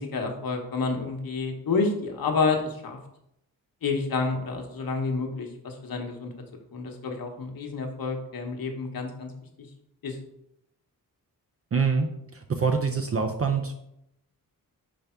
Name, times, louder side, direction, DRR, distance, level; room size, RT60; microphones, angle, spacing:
voice 1, 0.0-3.0 3.8-6.3 6.7-9.3 10.0-10.2, left 4 dB, 70° left, 3 dB, 1.0 m, -29 dB
voice 2, 11.7-13.7, right 5 dB, 40° right, 4 dB, 0.5 m, -25 dB
5.2 x 3.4 x 5.6 m, 0.81 s
wide cardioid pair, 175°, 36 cm